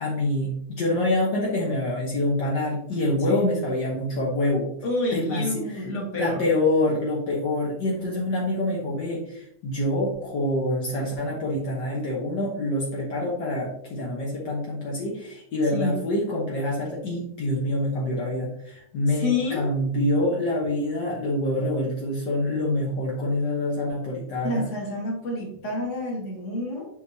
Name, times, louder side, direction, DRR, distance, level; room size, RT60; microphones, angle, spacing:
voice 1, 0.0-4.7 5.1-5.4 5.7-5.8 6.2-24.7, left 1 dB, 65° left, -4 dB, 1.0 m, -26 dB
voice 2, 4.8-6.4 15.7-15.9 19.1-19.6 24.4-26.9, left 2 dB, 30° left, -2 dB, 1.5 m, -28 dB
8.1 x 5.0 x 2.7 m, 0.74 s
omnidirectional pair, 3.6 m